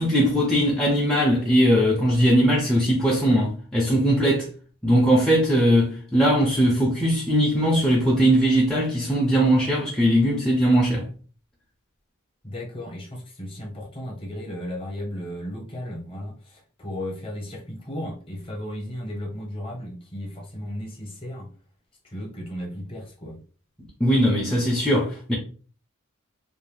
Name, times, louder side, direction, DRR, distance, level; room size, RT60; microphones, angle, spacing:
voice 1, 0.0-4.5 4.8-11.1 24.0-25.4, equal, 5° left, 0.4 m, -20 dB
voice 2, 12.4-21.5 22.0-23.4, left 1 dB, 25° left, 0.8 m, -35 dB
2.6 x 2.0 x 3.2 m
head